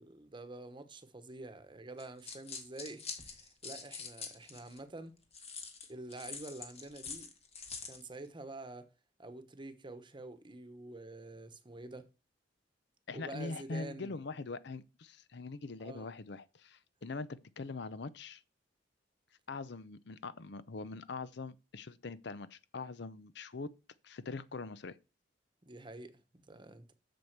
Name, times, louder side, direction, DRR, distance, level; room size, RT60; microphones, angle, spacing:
voice 1, 0.0-5.2 5.9-7.3 7.8-8.9 9.2-12.1 13.1-14.1 15.8-16.1 25.7-26.9, right 2 dB, 25° right, 1.0 m, -47 dB
sound 1, 2.0-4.8 5.3-8.0, left 5 dB, 35° left, 1.8 m, -45 dB
voice 2, 13.1-18.4 19.5-23.7 24.0-25.0, left 3 dB, 65° left, 0.7 m, -43 dB
7.6 x 7.0 x 6.6 m
head